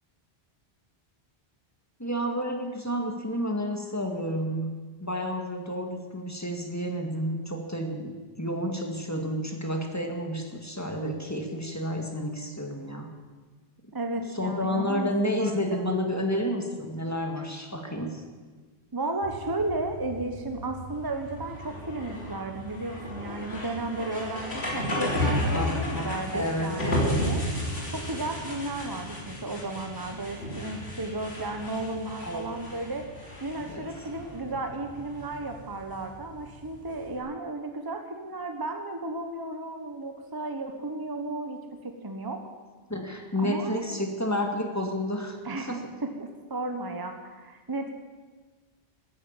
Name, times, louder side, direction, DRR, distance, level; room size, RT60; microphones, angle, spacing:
voice 1, 2.0-4.7 5.0-13.1 14.4-18.2 25.5-27.2 32.2-32.4 33.7-33.9 42.9-45.8, equal, 15° left, 3 dB, 2.0 m, -30 dB
voice 2, 13.9-15.6 18.9-27.4 27.9-33.0 33.4-42.4 43.4-44.1 45.4-47.9, right 2 dB, 20° right, 5 dB, 1.1 m, -34 dB
sound 1, 19.2-37.2, left 1 dB, 75° left, 3.5 m, -34 dB
14.0 x 9.9 x 8.8 m, 1.4 s
omnidirectional pair, 1.1 m